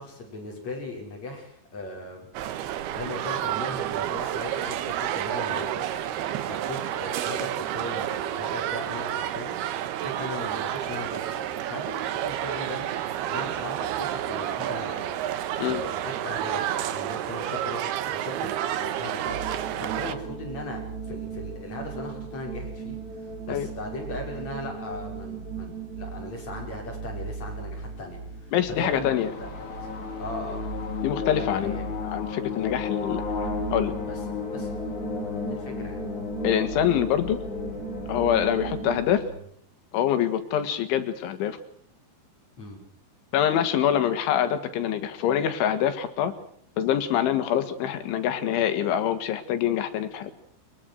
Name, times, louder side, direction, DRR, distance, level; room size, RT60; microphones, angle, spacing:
voice 1, 0.0-2.3 2.9-6.0 6.4-9.6 10.0-12.9 13.3-15.2 15.7-19.4 19.8-20.8 21.1-23.0 23.5-29.2 30.2-30.7 31.3-31.8 34.1-34.2 34.5-34.7 35.5-36.0 42.6-42.8, left 2 dB, 35° left, 0 dB, 6.9 m, -38 dB
sound 1, 2.3-20.1, right 11 dB, 70° right, 2.9 m, -30 dB
sound 2, 19.2-39.0, right 5 dB, 40° right, 5.8 m, -37 dB
voice 2, 28.5-29.3 31.0-31.7 32.0-33.2 33.7-33.9 36.4-37.4 38.1-39.2 39.9-41.6 43.3-46.3 46.8-50.3, left 10 dB, 85° left, 9 dB, 4.3 m, -25 dB
sound 3, 29.2-39.4, left 7 dB, 65° left, 6.6 m, -34 dB
23.0 x 22.5 x 6.5 m, 0.63 s
omnidirectional pair, 5.3 m